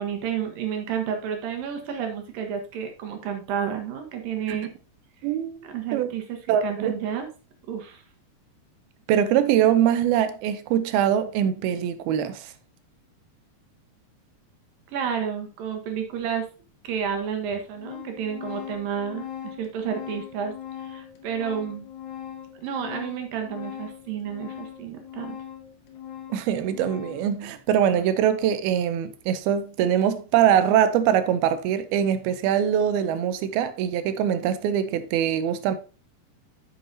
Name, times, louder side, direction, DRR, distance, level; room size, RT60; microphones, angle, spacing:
voice 1, 0.0-4.7 5.6-7.3 7.6-8.0 14.9-16.5 16.8-21.9 22.6-25.4, right 8 dB, 65° right, 2.8 m, -31 dB
voice 2, 5.2-6.1 6.5-6.9 9.1-12.5 26.3-35.8, right 9 dB, 85° right, 2.5 m, -23 dB
Organ, 16.1-16.2 17.1-17.2 17.5-27.4, left 10 dB, 75° left, 1.7 m, -40 dB
8.5 x 7.0 x 2.8 m
omnidirectional pair, 4.6 m